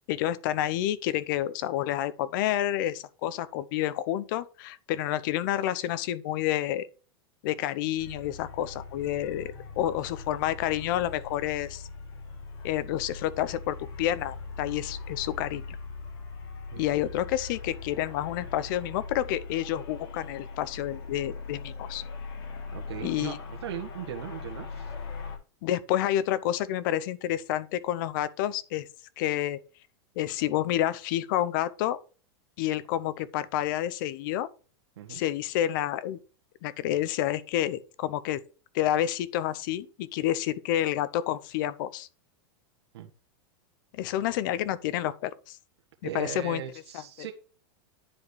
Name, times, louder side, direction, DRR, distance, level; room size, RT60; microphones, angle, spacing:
voice 1, 0.1-6.9 7.4-11.9 12.6-15.6 16.8-22.0 23.0-23.4 25.6-28.9 29.2-29.6 30.2-32.0 32.6-34.5 35.1-36.2 36.6-38.4 38.7-42.1 43.9-45.6 46.1-46.6 46.9-47.0, left 12 dB, 50° left, 0.8 m, -29 dB
sound 1, 8.0-25.4, left 4 dB, 75° left, 4.0 m, -41 dB
voice 2, 22.7-24.9 35.0-35.2 42.9-43.1 46.0-47.3, right 10 dB, 85° right, 1.4 m, -38 dB
10.0 x 5.0 x 4.7 m
supercardioid pair, 155°, 13 cm